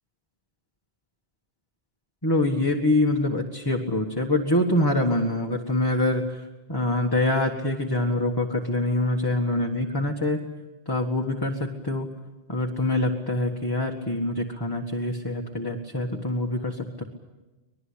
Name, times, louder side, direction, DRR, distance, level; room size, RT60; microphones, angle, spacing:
voice 1, 2.2-6.4 6.7-10.4 10.9-12.1 12.5-17.0, left 1 dB, 20° left, 1 dB, 1.7 m, -25 dB
25.0 x 21.0 x 8.7 m, 1.1 s
omnidirectional pair, 1.2 m